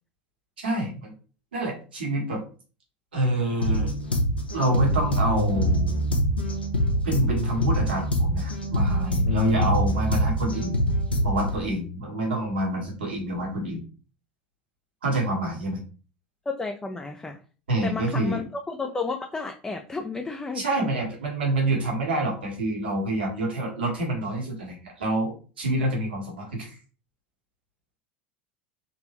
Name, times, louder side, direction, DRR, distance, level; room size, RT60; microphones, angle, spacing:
voice 1, 0.6-1.1 1.5-2.4 3.1-3.9 4.5-6.1 7.0-10.8 11.2-13.8 15.0-15.8 17.7-18.4 20.5-26.7, right 1 dB, 75° right, -1 dB, 1.5 m, -27 dB
sound 1, 3.6-11.6, equal, 85° left, 0.8 m, -24 dB
voice 2, 16.5-17.4 17.8-20.6, left 3 dB, 15° left, 4 dB, 0.4 m, -32 dB
3.7 x 2.8 x 3.0 m, 0.37 s
figure-of-eight pair, 75°, 6 cm